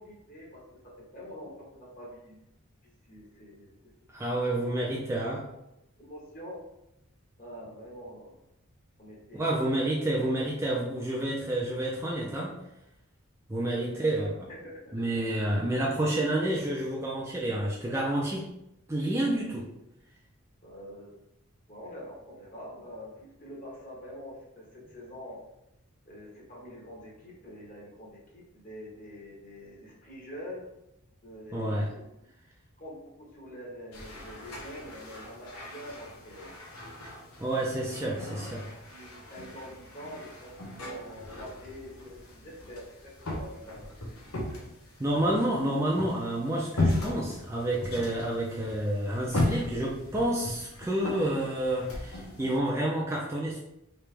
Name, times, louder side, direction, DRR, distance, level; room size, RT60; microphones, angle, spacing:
voice 1, 0.0-2.4 2.8-3.9 4.9-5.0 6.0-6.6 7.4-8.4 9.0-9.8 13.6-14.0 14.5-15.6 20.6-21.1 21.7-25.4 26.1-30.6 31.2-32.1 32.8-36.6 37.5-38.1 38.4-38.6 38.9-44.2, equal, 40° left, -4 dB, 1.2 m, -45 dB
voice 2, 4.1-5.5 9.3-12.6 13.5-14.5 14.9-18.5 18.9-19.7 31.5-31.9 37.4-38.6 45.0-53.6, right 1 dB, 10° right, -4 dB, 0.4 m, -29 dB
sound 1, 33.9-52.6, left 2 dB, 85° left, 0.9 m, -37 dB
3.3 x 2.9 x 3.3 m, 0.86 s
head